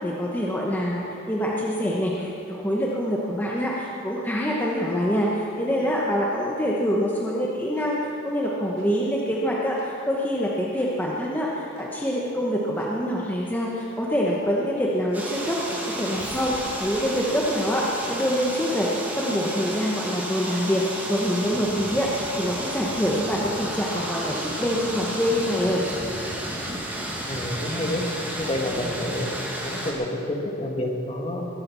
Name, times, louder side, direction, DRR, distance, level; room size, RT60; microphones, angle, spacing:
voice 1, 0.0-15.6 15.9-25.8, equal, 10° left, -4 dB, 1.1 m, -25 dB
sound 1, 7.8-7.9 8.8-8.9 9.8-9.9 10.8-10.9 11.8-11.9 12.8-12.9 13.8-13.9 14.4-18.3, right 1 dB, 55° right, 3.4 m, -47 dB
sound 2, 15.1-29.9, right 1 dB, 10° right, 1.9 m, -32 dB
voice 2, 27.3-28.0 28.4-29.3 29.6-31.4, left 1 dB, 30° left, 1 dB, 1.6 m, -28 dB
21.0 x 8.7 x 6.2 m, 2.8 s
head